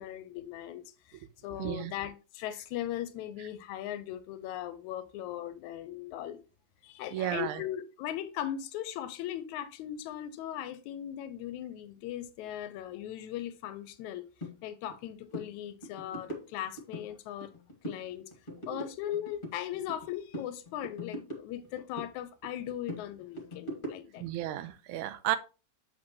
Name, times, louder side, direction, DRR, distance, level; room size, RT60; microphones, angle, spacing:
voice 1, 0.0-6.4 6.8-14.3 14.6-17.5 17.9-18.3 18.7-24.3, left 11 dB, 85° left, 2.0 m, -39 dB
voice 2, 1.6-1.9 7.1-7.6 18.7-18.8 24.2-25.4, right 13 dB, 90° right, 2.1 m, -33 dB
sound 1, 14.4-14.5 14.9-15.0 15.3-15.5 15.8-17.1 17.4-18.0 18.3-20.1 20.3-22.1 22.4-24.3, equal, 25° left, 1.4 m, -41 dB
8.8 x 6.0 x 2.9 m
omnidirectional pair, 3.4 m